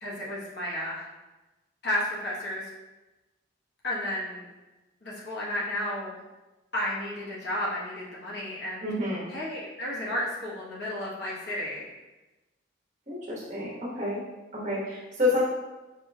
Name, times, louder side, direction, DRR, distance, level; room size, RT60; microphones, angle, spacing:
voice 1, 0.0-1.1 1.8-2.7 3.8-4.4 5.0-6.2 6.7-8.9 9.3-11.9, left 1 dB, 60° left, -6 dB, 1.1 m, -32 dB
voice 2, 8.8-9.2 13.1-14.2 14.5-15.4, left 2 dB, 40° right, -5 dB, 1.1 m, -29 dB
5.1 x 2.9 x 2.3 m, 1.1 s
head